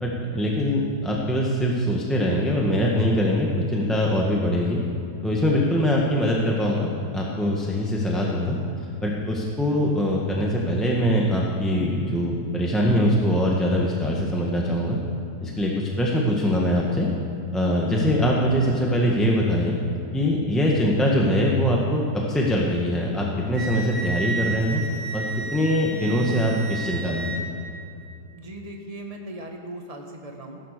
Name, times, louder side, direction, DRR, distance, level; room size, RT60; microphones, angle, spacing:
voice 1, 0.0-4.8 5.2-8.6 9.0-15.0 15.4-17.1 17.5-19.7 20.1-24.8 25.1-25.3 25.5-27.4, equal, ahead, -3 dB, 1.4 m, -23 dB
Wind instrument woodwind instrument, 23.5-27.4, right 3 dB, 70° right, 2.0 m, -32 dB
voice 2, 28.3-30.6, right 1 dB, 20° right, 2 dB, 1.5 m, -38 dB
16.0 x 11.5 x 6.8 m, 2.6 s
omnidirectional pair, 1.9 m